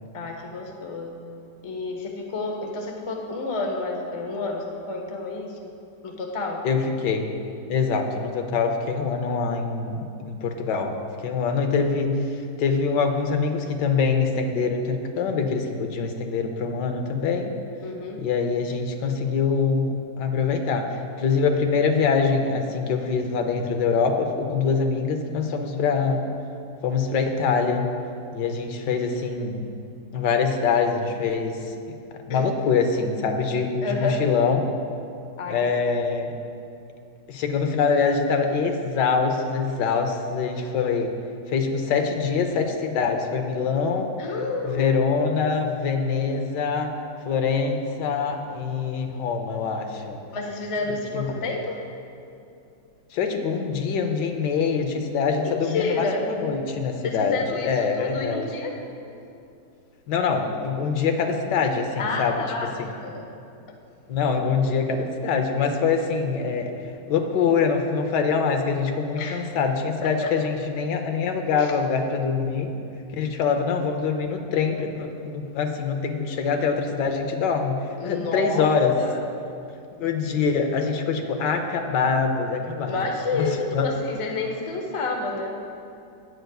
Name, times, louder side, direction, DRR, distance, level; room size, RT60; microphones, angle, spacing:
voice 1, 0.1-1.2 1.6-5.6 6.0-6.7 17.8-18.3 32.3-32.5 33.8-34.2 35.4-35.7 44.2-44.9 50.3-51.9 55.6-56.2 57.0-58.8 62.0-63.3 69.2-69.4 71.6-71.7 78.0-78.7 79.0-79.3 82.9-85.6, left 3 dB, 45° left, 1 dB, 0.4 m, -30 dB
voice 2, 6.6-7.3 7.7-11.0 11.2-17.6 18.2-26.3 26.8-27.9 28.3-29.7 30.1-31.6 32.3-34.7 35.5-36.4 37.3-41.1 41.5-44.1 44.6-46.9 47.3-50.2 51.1-51.4 53.1-58.5 60.1-62.4 62.8-62.9 64.1-66.7 67.1-72.7 73.1-78.9 80.0-83.0 83.3-83.9, left 5 dB, 80° left, 5 dB, 1.4 m, -24 dB
14.5 x 9.1 x 2.3 m, 2.6 s
omnidirectional pair, 1.9 m